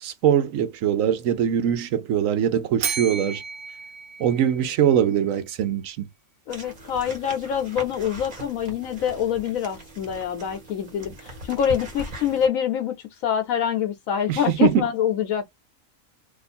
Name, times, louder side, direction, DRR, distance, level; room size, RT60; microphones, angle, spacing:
voice 1, 0.0-3.4 4.2-6.1 14.3-14.8, right 9 dB, 75° right, 1.0 m, -22 dB
Bell, 2.8-5.0, right 6 dB, 55° right, 0.7 m, -33 dB
voice 2, 6.5-12.9 13.2-15.5, left 9 dB, 80° left, 1.0 m, -25 dB
sound 1, 6.5-12.5, right 1 dB, 40° right, 1.3 m, -40 dB
2.7 x 2.5 x 4.1 m
omnidirectional pair, 1.4 m